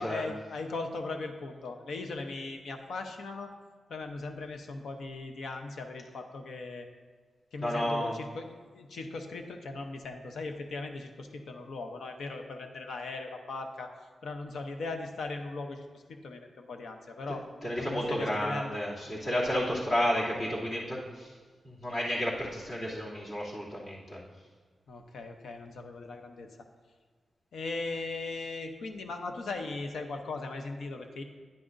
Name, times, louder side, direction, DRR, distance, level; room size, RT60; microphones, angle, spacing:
voice 1, 0.0-3.5 3.9-6.9 7.5-13.9 14.2-17.4 17.8-18.8 24.9-26.5 27.5-31.2, left 3 dB, 85° left, 5 dB, 0.8 m, -38 dB
voice 2, 7.6-8.1 17.3-21.3 21.6-24.2, equal, 50° left, -7 dB, 2.7 m, -32 dB
10.0 x 9.9 x 2.6 m, 1.5 s
wide cardioid pair, 105°, 0 cm